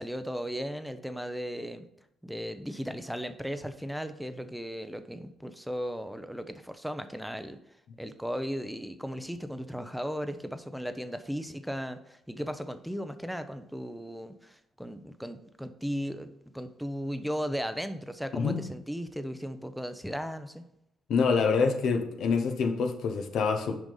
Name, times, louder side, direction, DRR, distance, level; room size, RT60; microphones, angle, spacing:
voice 1, 0.0-1.8 2.2-7.6 8.0-20.6, equal, ahead, 9 dB, 0.6 m, -36 dB
voice 2, 18.3-18.6 21.1-23.8, left 5 dB, 70° left, 6 dB, 0.9 m, -26 dB
6.1 x 5.2 x 5.5 m, 0.81 s
cardioid pair, 90°, 0 cm